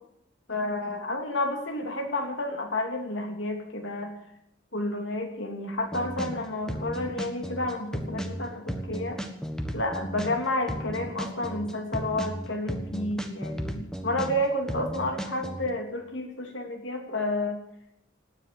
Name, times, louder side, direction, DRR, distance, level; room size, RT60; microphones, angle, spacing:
voice 1, 0.5-4.1 4.7-9.2 9.7-17.6, left 1 dB, 65° left, 4 dB, 2.9 m, -30 dB
sound 1, 5.8-6.4 6.7-10.4 10.7-14.4 14.7-15.7, equal, 5° left, 1.3 m, -34 dB
18.0 x 9.9 x 7.6 m, 0.79 s
head